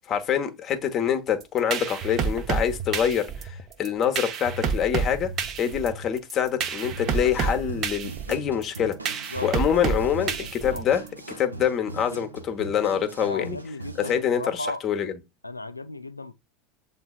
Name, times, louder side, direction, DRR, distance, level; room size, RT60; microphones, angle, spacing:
voice 1, 0.1-5.3 5.6-9.0 9.4-11.0 11.4-13.6 14.0-15.1, left 8 dB, 35° left, 0.9 m, -25 dB
sound 1, 1.4-11.1, right 6 dB, 40° right, 0.6 m, -29 dB
sound 2, 6.6-14.3, right 4 dB, 85° right, 0.6 m, -41 dB
voice 2, 9.3-10.8 13.2-14.8 15.4-16.3, left 2 dB, 85° left, 0.4 m, -36 dB
7.8 x 2.7 x 2.3 m
figure-of-eight pair, 80°, 0 cm